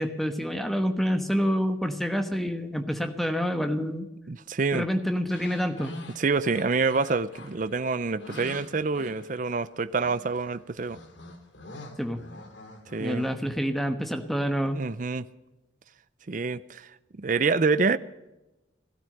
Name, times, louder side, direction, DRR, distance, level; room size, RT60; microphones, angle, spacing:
voice 1, 0.0-4.1 4.7-6.0 12.0-12.2 13.0-14.8, equal, ahead, 1.2 m, -27 dB
voice 2, 4.3-4.8 6.2-11.0 12.9-13.2 14.7-15.3 16.3-16.9 17.2-18.0, right 4 dB, 45° right, 0.5 m, -27 dB
sound 1, 5.3-9.7 10.0-13.6, left 2 dB, 85° left, 2.3 m, -46 dB
17.0 x 12.5 x 6.6 m
head